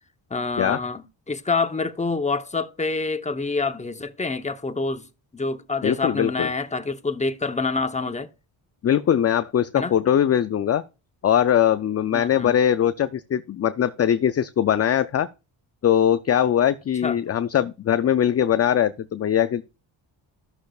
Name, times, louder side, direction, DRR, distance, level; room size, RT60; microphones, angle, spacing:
voice 1, 0.3-5.1 5.3-8.3 9.7-9.9 12.1-12.6 17.0-17.2, left 3 dB, 15° left, 0.9 m, -27 dB
voice 2, 5.8-6.5 8.8-10.8 11.2-15.3 15.8-19.6, left 9 dB, 35° left, 0.4 m, -21 dB
14.0 x 6.3 x 2.3 m
cardioid pair, 70°, 48 cm